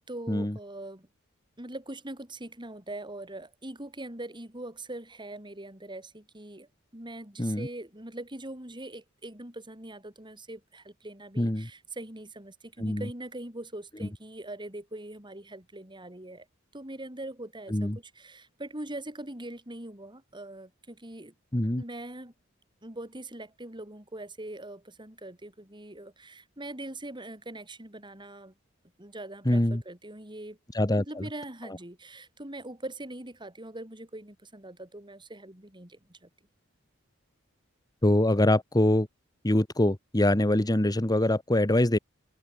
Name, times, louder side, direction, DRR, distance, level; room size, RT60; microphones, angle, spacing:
voice 1, 0.1-1.1 1.6-16.5 16.7-21.3 21.8-22.3 22.8-28.5 29.0-30.6 31.0-36.3, right 1 dB, 20° right, 5.2 m, -42 dB
voice 2, 11.4-11.7 12.8-13.1 17.7-18.0 21.5-21.8 29.4-29.8 30.7-31.2 38.0-39.1 39.4-42.0, left 1 dB, 20° left, 1.4 m, -24 dB
open air
head